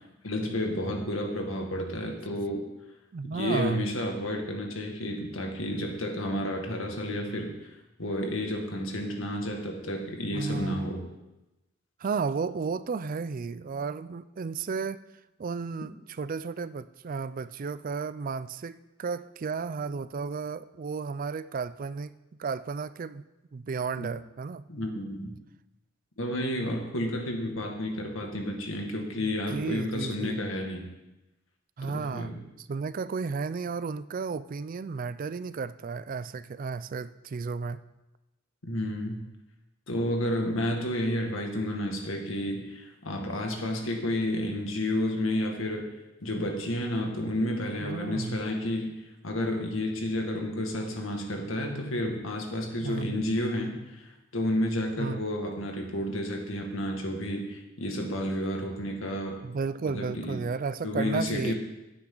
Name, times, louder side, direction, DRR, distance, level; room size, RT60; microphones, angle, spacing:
voice 1, 0.2-2.6 3.3-7.5 8.0-11.0 24.0-24.1 24.7-25.3 26.2-30.8 31.9-32.4 38.6-39.2 39.9-45.9 46.2-59.4 59.9-60.4 60.8-61.5, left 1 dB, 80° left, 2 dB, 2.0 m, -31 dB
voice 2, 3.1-3.9 10.3-10.9 12.0-15.0 15.4-23.2 23.5-24.7 29.2-30.4 31.8-32.3 32.7-37.8 47.8-48.4 52.8-53.2 55.0-55.2 59.4-61.5, right 5 dB, 45° right, 15 dB, 0.4 m, -33 dB
16.0 x 8.9 x 3.9 m, 1.0 s
head